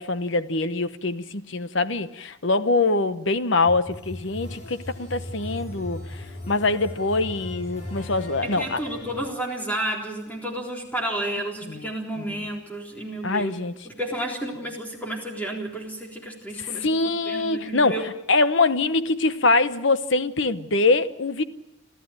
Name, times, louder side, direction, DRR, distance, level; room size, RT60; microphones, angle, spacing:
voice 1, 0.0-8.8 11.7-11.9 12.2-12.5 13.2-13.7 16.6-21.4, left 3 dB, 60° left, 1.0 m, -24 dB
sound 1, 3.7-9.3, left 1 dB, 35° left, 4.2 m, -37 dB
voice 2, 8.4-13.5 13.8-16.9 17.3-18.1, right 1 dB, 5° left, 3.8 m, -31 dB
29.5 x 13.0 x 8.9 m
head